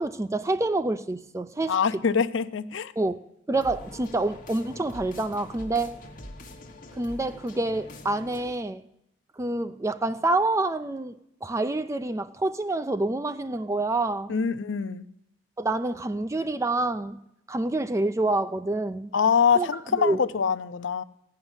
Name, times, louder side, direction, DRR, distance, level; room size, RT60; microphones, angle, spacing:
voice 1, 0.0-2.0 3.0-3.2 3.5-5.9 7.0-8.8 9.4-14.4 15.6-17.2 17.5-19.1 19.6-20.2, right 2 dB, 15° right, 0.4 m, -27 dB
voice 2, 1.7-2.9 14.3-15.0 19.1-21.0, left 6 dB, 70° left, 0.5 m, -24 dB
sound 1, 3.5-8.6, left 1 dB, 45° left, 1.4 m, -44 dB
16.0 x 5.8 x 9.6 m
head